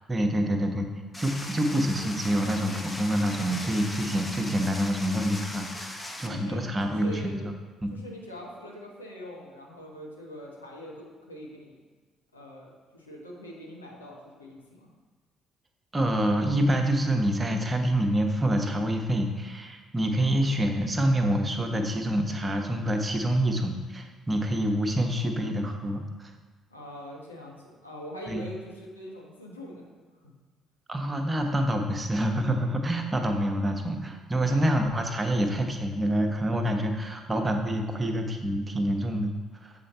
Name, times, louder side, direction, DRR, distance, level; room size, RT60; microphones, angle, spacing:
voice 1, 0.1-0.9 1.2-7.5 7.8-7.9 15.9-26.3 28.3-28.4 30.9-39.3 39.6-39.7, equal, 25° right, 4 dB, 1.0 m, -27 dB
sound 1, 1.1-6.3, left 1 dB, 20° left, 1.0 m, -39 dB
voice 2, 6.2-6.6 7.0-7.3 7.9-11.8 12.3-14.9 26.7-29.9 34.4-34.7, left 1 dB, 90° left, -2 dB, 1.0 m, -43 dB
7.5 x 4.4 x 4.3 m, 1.3 s
figure-of-eight pair, 45°, 0 cm